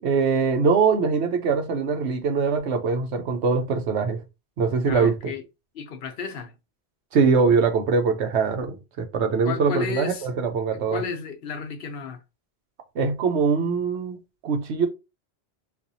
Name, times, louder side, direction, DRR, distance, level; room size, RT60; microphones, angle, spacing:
voice 1, 0.0-4.2 4.6-5.3 7.1-11.0 12.9-14.2 14.4-14.9, right 5 dB, 90° right, 1.0 m, -22 dB
voice 2, 4.8-5.4 5.7-6.5 9.4-10.3 10.7-12.2, left 5 dB, 65° left, 0.8 m, -33 dB
4.2 x 2.4 x 2.7 m
omnidirectional pair, 1.1 m